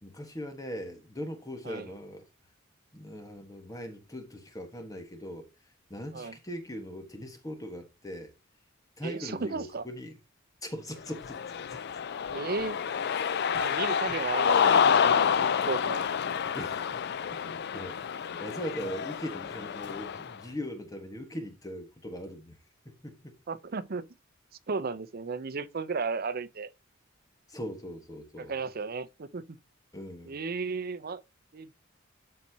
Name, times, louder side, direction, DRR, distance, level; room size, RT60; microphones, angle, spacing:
voice 1, 0.0-2.3 2.9-8.3 9.0-10.1 10.6-11.8 16.5-17.0 17.3-22.6 22.8-23.4 27.5-28.5 29.9-30.4, equal, 15° left, 1.3 m, -40 dB
voice 2, 9.0-9.8 12.3-12.8 13.5-16.0 17.4-17.5 23.5-24.0 24.7-26.7 28.4-29.6 30.3-31.2 31.5-31.7, right 4 dB, 50° right, 0.6 m, -34 dB
Cheering, 11.1-20.3, left 7 dB, 55° left, 0.4 m, -28 dB
12.5 x 4.2 x 2.7 m
head